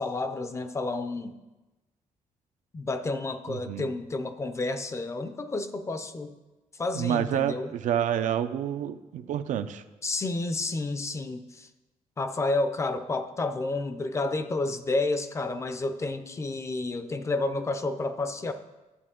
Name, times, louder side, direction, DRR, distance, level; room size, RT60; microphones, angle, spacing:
voice 1, 0.0-1.3 2.7-6.3 6.8-7.7 10.0-11.7 12.2-18.5, left 2 dB, 20° left, 10 dB, 0.4 m, -30 dB
voice 2, 3.5-3.9 6.9-9.8, right 10 dB, 75° right, 10 dB, 0.5 m, -28 dB
11.0 x 7.7 x 3.7 m, 1.1 s
cardioid pair, 165°, 13 cm